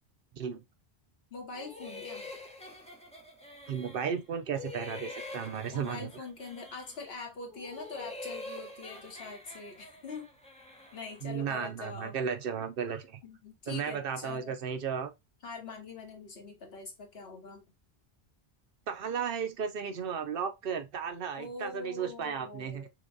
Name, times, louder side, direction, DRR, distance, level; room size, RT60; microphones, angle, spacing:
voice 1, 1.3-2.3 5.7-10.3 10.9-12.2 13.2-14.6 15.4-17.6 21.3-22.9, left 4 dB, 75° left, 1.4 m, -43 dB
sound 1, 1.5-4.2 4.5-7.1 7.5-11.3, left 2 dB, 5° left, 0.7 m, -46 dB
voice 2, 3.7-6.1 11.2-13.2 13.7-15.1 18.9-22.9, right 7 dB, 65° right, 0.8 m, -34 dB
5.6 x 2.3 x 2.6 m
omnidirectional pair, 1.0 m